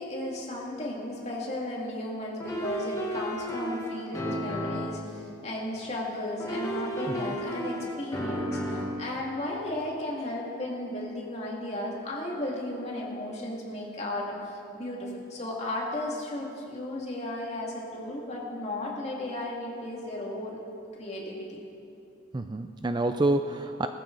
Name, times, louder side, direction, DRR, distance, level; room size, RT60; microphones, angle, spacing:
voice 1, 0.0-20.6 20.9-21.6, left 1 dB, 35° left, -3 dB, 2.3 m, -35 dB
sound 1, 2.4-5.1 6.4-9.0, equal, 15° left, 1.5 m, -33 dB
voice 2, 7.1-7.4 22.3-23.9, right 2 dB, 20° right, 8 dB, 0.3 m, -28 dB
19.0 x 13.5 x 4.0 m, 2.7 s
head